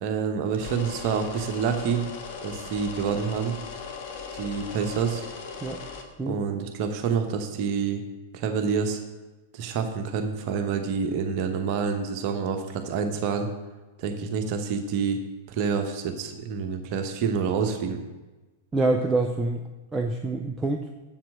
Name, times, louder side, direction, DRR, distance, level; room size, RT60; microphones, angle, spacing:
voice 1, 0.0-2.0 2.4-3.6 4.3-5.2 6.3-8.0 8.3-9.0 9.5-13.5 14.0-15.2 15.5-18.0, right 6 dB, 40° right, 5 dB, 1.0 m, -27 dB
sound 1, 0.5-6.0, left 5 dB, 45° left, 1.2 m, -38 dB
voice 2, 18.7-19.6 19.9-20.8, right 2 dB, 10° right, 3 dB, 0.6 m, -25 dB
7.5 x 7.4 x 6.2 m, 1.2 s
figure-of-eight pair, 95°, 0 cm